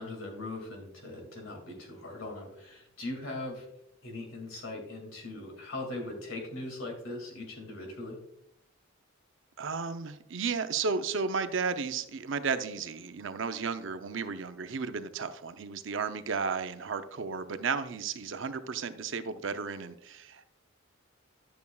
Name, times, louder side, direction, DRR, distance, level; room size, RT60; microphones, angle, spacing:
voice 1, 0.0-3.7 4.0-8.2, left 2 dB, 75° left, 2 dB, 2.2 m, -40 dB
voice 2, 9.6-20.5, right 5 dB, 65° right, 10 dB, 0.5 m, -33 dB
10.5 x 6.9 x 2.3 m, 0.79 s
head